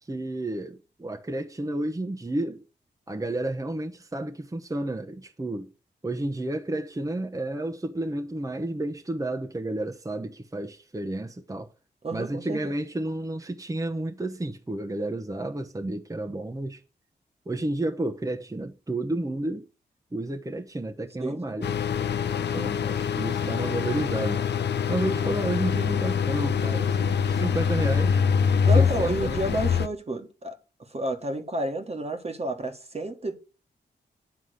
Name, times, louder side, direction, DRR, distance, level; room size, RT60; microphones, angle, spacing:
voice 1, 0.0-2.6 3.1-5.7 6.0-11.7 12.1-16.8 17.5-19.7 20.1-21.7 22.5-24.4 24.9-28.2 28.7-29.4, right 1 dB, 20° right, 0.9 m, -31 dB
voice 2, 12.0-12.8 21.2-21.5 22.4-22.7 25.1-25.3 28.6-33.4, right 2 dB, 35° right, 1.4 m, -31 dB
sound 1, 21.6-29.9, left 7 dB, 70° left, 0.6 m, -24 dB
9.5 x 3.6 x 6.4 m
cardioid pair, 45°, 19 cm